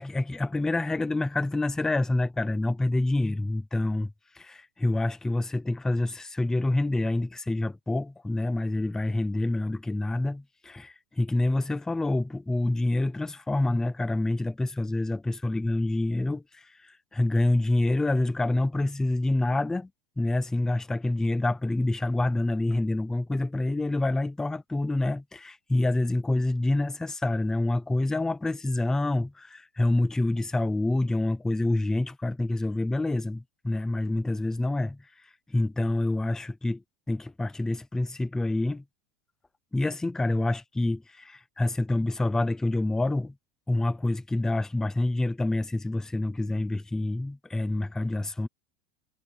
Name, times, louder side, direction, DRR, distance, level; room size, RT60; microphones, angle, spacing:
voice 1, 0.0-19.9 20.2-35.0 35.5-36.8 37.1-38.8 39.7-43.3 43.7-48.5, left 2 dB, ahead, 0.4 m, -27 dB
supercardioid pair, 180°, 35 cm